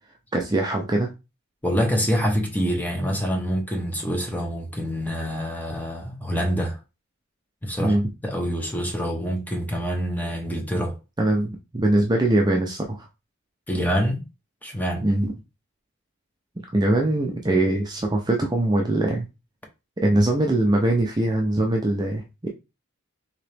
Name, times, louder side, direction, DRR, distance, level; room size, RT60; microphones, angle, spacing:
voice 1, 0.3-1.1 7.8-8.0 11.2-13.1 15.0-15.3 16.7-19.3 20.0-22.5, right 1 dB, 20° right, 0.5 m, -22 dB
voice 2, 1.6-6.8 7.6-8.0 8.2-11.0 13.7-14.2 14.6-15.1, equal, 10° left, 0.8 m, -26 dB
3.8 x 2.9 x 3.4 m
head